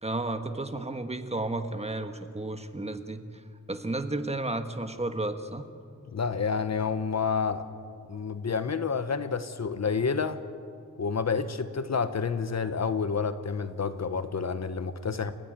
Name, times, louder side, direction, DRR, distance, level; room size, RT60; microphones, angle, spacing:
voice 1, 0.0-3.2 3.7-5.7, right 2 dB, 20° right, 7 dB, 1.4 m, -32 dB
voice 2, 6.1-7.7 8.1-10.4 11.0-15.3, left 5 dB, 60° left, 11 dB, 1.1 m, -29 dB
29.0 x 15.0 x 9.1 m, 2.3 s
wide cardioid pair, 125°, 31 cm